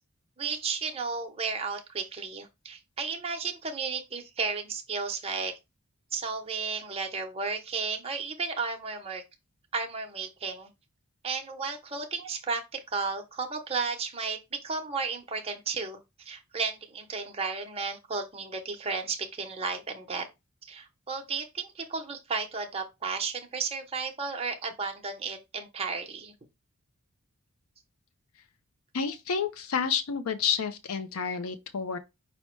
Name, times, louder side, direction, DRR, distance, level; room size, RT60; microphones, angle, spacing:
voice 1, 0.4-5.6 6.1-9.2 9.7-10.7 11.2-20.3 20.6-26.3, right 4 dB, 25° right, 0.8 m, -33 dB
voice 2, 28.9-32.0, left 6 dB, 75° left, 0.5 m, -30 dB
5.5 x 2.1 x 4.4 m
head